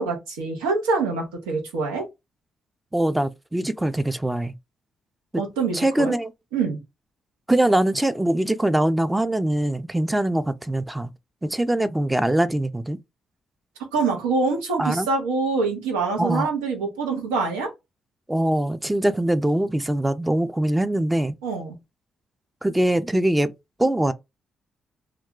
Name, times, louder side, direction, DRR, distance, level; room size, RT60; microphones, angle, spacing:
voice 1, 0.0-2.0 5.4-6.2 6.5-6.8 13.9-17.7 21.4-21.8, right 4 dB, 85° right, 0.9 m, -25 dB
voice 2, 2.9-4.5 5.7-6.3 7.5-11.1 11.4-13.0 14.8-15.1 16.2-16.5 18.3-21.4 22.6-23.5 23.8-24.1, right 1 dB, 15° right, 0.4 m, -22 dB
2.4 x 2.2 x 3.6 m
hypercardioid pair, 45°, 0 cm